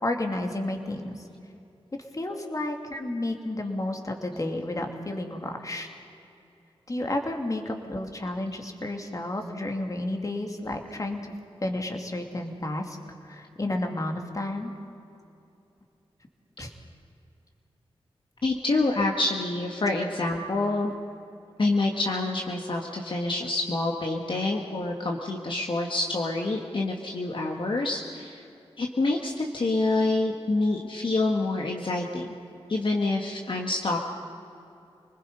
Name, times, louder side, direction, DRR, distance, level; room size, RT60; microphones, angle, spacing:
voice 1, 0.0-1.2 2.1-5.9 6.9-11.3 11.6-13.0 13.2-14.7 16.6-16.7, left 1 dB, 35° left, 3 dB, 2.6 m, -31 dB
voice 2, 18.4-20.9 21.6-28.4 28.8-32.3 32.7-34.0, left 2 dB, 55° left, 0 dB, 1.8 m, -27 dB
27.0 x 20.0 x 5.5 m, 2.7 s
wide cardioid pair, 70°, 10 cm